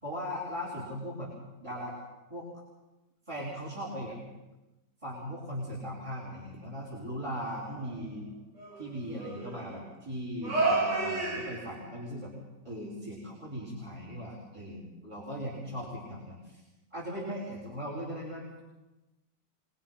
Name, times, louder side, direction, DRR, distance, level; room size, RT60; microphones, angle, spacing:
voice 1, 0.0-1.3 1.6-2.0 2.3-2.5 3.3-4.2 5.0-8.3 8.8-12.3 12.6-16.6 16.9-18.5, equal, 15° right, -4 dB, 4.6 m, -38 dB
sound 1, 7.7-8.0 8.6-9.7 10.4-11.9, right 3 dB, 70° right, 3.7 m, -30 dB
23.5 x 20.5 x 5.8 m, 1.0 s
omnidirectional pair, 1.9 m